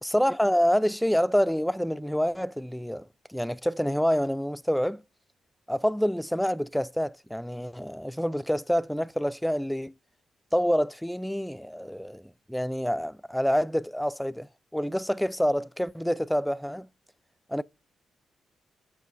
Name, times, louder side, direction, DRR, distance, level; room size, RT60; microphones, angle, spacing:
voice 1, 0.0-5.0 5.7-9.9 10.5-12.2 12.5-14.5 14.7-16.9 17.5-17.6, equal, 5° left, 0.3 m, -27 dB
7.3 x 5.7 x 3.9 m
hypercardioid pair, 45°, 0 cm